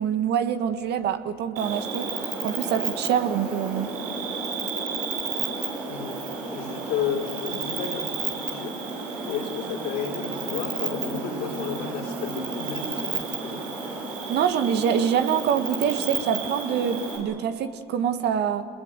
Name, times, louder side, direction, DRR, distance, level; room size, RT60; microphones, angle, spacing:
voice 1, 0.0-2.1 2.4-3.9 14.3-18.6, right 8 dB, 65° right, 9 dB, 1.7 m, -25 dB
Cricket, 1.6-17.2, right 4 dB, 85° right, 6.4 m, -32 dB
voice 2, 5.9-6.2 6.5-8.7 9.2-13.6, left 7 dB, 75° left, 1 dB, 4.9 m, -32 dB
28.0 x 21.0 x 8.2 m, 2.6 s
hypercardioid pair, 70°, 19 cm